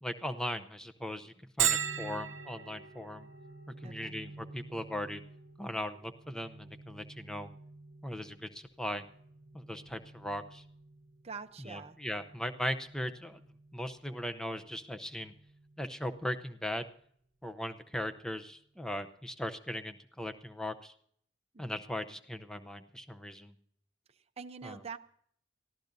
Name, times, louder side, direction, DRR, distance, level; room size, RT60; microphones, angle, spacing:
voice 1, 0.0-3.3 3.8-5.2 5.6-7.5 8.0-9.0 9.5-10.6 11.6-13.4 13.7-15.3 15.8-16.8 17.4-20.9 21.6-23.5 24.6-24.8, left 1 dB, 5° left, 9 dB, 0.7 m, -38 dB
Bell, 1.6-17.0, right 9 dB, 70° right, 0.9 m, -41 dB
voice 2, 3.8-4.2 11.2-12.0 21.5-21.7 24.4-25.0, right 5 dB, 35° right, 8 dB, 0.6 m, -44 dB
23.5 x 14.5 x 2.7 m, 0.63 s
head